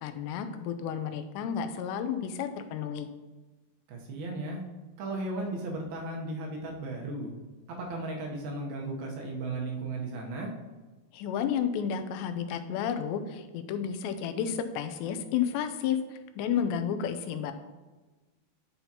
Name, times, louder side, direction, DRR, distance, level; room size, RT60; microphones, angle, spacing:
voice 1, 0.0-3.1 11.1-17.5, left 8 dB, 90° left, 9 dB, 2.8 m, -31 dB
voice 2, 3.9-4.6 5.0-7.3 7.7-10.5, right 2 dB, 75° right, 0 dB, 2.6 m, -35 dB
10.5 x 5.6 x 2.8 m, 1.2 s
omnidirectional pair, 4.9 m